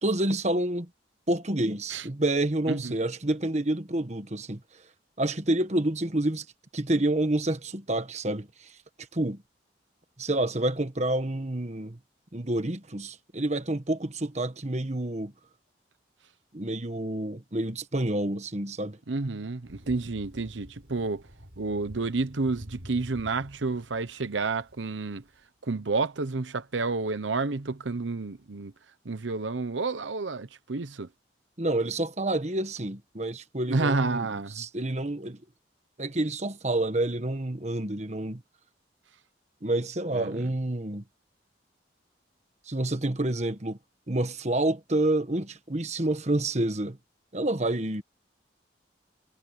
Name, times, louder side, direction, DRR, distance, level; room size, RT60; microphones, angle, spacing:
voice 1, 0.0-0.9 1.3-4.6 5.2-6.4 6.7-8.7 9.1-9.4 10.2-12.0 12.3-15.3 16.5-19.0 31.6-34.3 34.5-35.4 36.0-38.4 39.6-41.0 42.7-43.8 44.1-47.0 47.3-48.0, right 1 dB, 40° right, 1.4 m, -28 dB
voice 2, 19.1-21.2 21.6-25.2 25.6-28.7 29.0-31.1 33.7-34.6 40.1-40.3, right 3 dB, 85° right, 0.9 m, -30 dB
Thunder, 19.6-25.3, equal, 60° right, 7.8 m, -48 dB
head